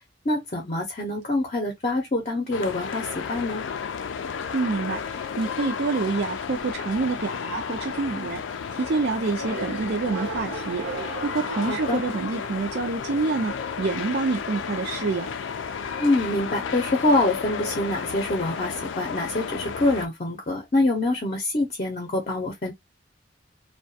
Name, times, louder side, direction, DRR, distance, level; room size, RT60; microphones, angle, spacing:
voice 1, 0.3-3.6 11.7-12.0 16.0-22.7, left 2 dB, 40° left, 0.6 m, -25 dB
sound 1, 2.5-20.1, left 6 dB, 80° left, 0.4 m, -33 dB
voice 2, 4.5-8.4 8.7-10.8 11.2-13.5 13.8-15.3, right 4 dB, 55° right, 0.4 m, -27 dB
sound 2, 9.4-12.9, right 3 dB, 80° right, 1.0 m, -36 dB
2.3 x 2.2 x 2.6 m
head